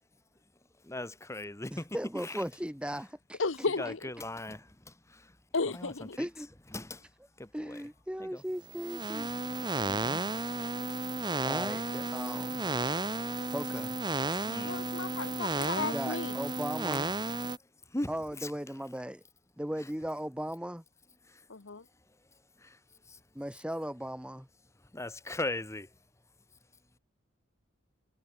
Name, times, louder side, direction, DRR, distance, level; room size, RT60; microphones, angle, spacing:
voice 1, 0.8-2.0 2.2-2.4 3.8-5.3 5.7-6.3 6.7-7.1 7.4-7.8 8.2-8.4 9.8-10.2 14.3-14.9 15.6-15.7 17.9-18.1 18.4-18.5 21.3-21.4 22.6-22.8 23.1-23.2 24.9-25.9, left 2 dB, 15° left, 1.3 m, -39 dB
voice 2, 1.7-3.9 6.2-6.5 7.5-9.3 11.4-12.7 13.5-14.0 15.8-17.1 18.1-19.2 19.6-20.8 23.4-24.5, equal, 5° right, 1.8 m, -37 dB
voice 3, 3.4-4.1 5.5-6.2 14.6-16.3 21.5-21.8, left 4 dB, 80° left, 1.1 m, -34 dB
sound 1, 8.6-17.6, right 2 dB, 25° right, 1.8 m, -33 dB
head